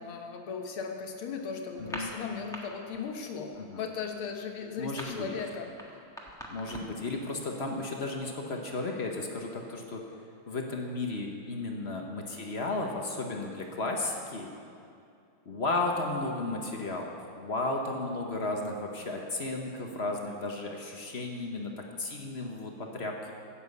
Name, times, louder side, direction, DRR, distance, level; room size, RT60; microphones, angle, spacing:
voice 1, 0.0-5.7, left 5 dB, 75° left, 3 dB, 2.0 m, -37 dB
voice 2, 1.8-2.1 3.6-3.8 4.8-5.4 6.5-10.0 10.5-14.5 15.4-23.3, left 2 dB, 40° left, 1 dB, 0.9 m, -34 dB
sound 1, 1.8-2.6 2.9-3.2 3.5-7.1, equal, ahead, 1.0 m, -42 dB
11.5 x 7.5 x 8.3 m, 2.5 s
omnidirectional pair, 2.3 m